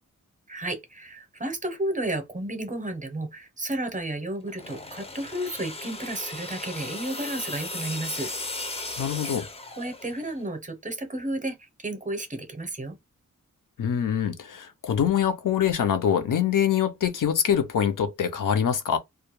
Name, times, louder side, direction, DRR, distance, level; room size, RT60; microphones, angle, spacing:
voice 1, 0.5-8.3 9.8-13.0, right 1 dB, 25° right, 0.6 m, -32 dB
sound 1, 4.5-10.3, left 2 dB, 20° left, 0.4 m, -36 dB
voice 2, 9.0-9.5 13.8-19.0, left 8 dB, 75° left, 0.6 m, -24 dB
2.3 x 2.1 x 2.9 m
wide cardioid pair, 130°, 32 cm